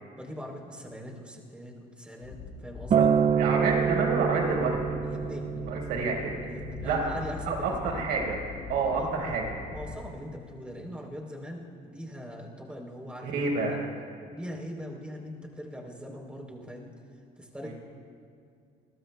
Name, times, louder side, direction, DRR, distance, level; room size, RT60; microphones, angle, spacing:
voice 1, 0.2-3.1 5.0-5.5 6.4-8.0 9.0-9.3 9.7-13.8 14.3-16.9 17.4-17.7, equal, 5° right, -1 dB, 3.5 m, -41 dB
sound 1, 2.2-10.1, left 5 dB, 70° left, 5.5 m, -42 dB
Acoustic guitar, 2.9-7.2 8.0-8.1, right 7 dB, 40° right, 0.6 m, -27 dB
voice 2, 3.4-4.8 5.7-6.4 6.8-7.0 7.5-8.4 8.7-9.6 13.2-13.8 17.6-17.7, right 4 dB, 80° right, -1 dB, 4.5 m, -28 dB
29.0 x 21.0 x 2.3 m, 2.3 s
cardioid pair, 110°, 17 cm